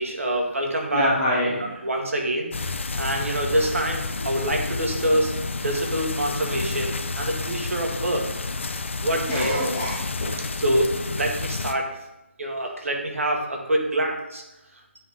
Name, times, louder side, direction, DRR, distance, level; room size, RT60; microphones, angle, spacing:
voice 1, 0.0-1.1 1.8-5.3 5.6-8.3 9.0-9.7 10.6-11.9 12.4-14.4, right 1 dB, 90° right, 1 dB, 1.5 m, -26 dB
voice 2, 0.9-1.8 9.3-10.4, left 1 dB, 5° left, -7 dB, 0.4 m, -25 dB
sound 1, 2.5-11.7, left 3 dB, 65° left, 0.5 m, -30 dB
8.9 x 3.1 x 3.6 m, 0.94 s
hypercardioid pair, 180°, 7 cm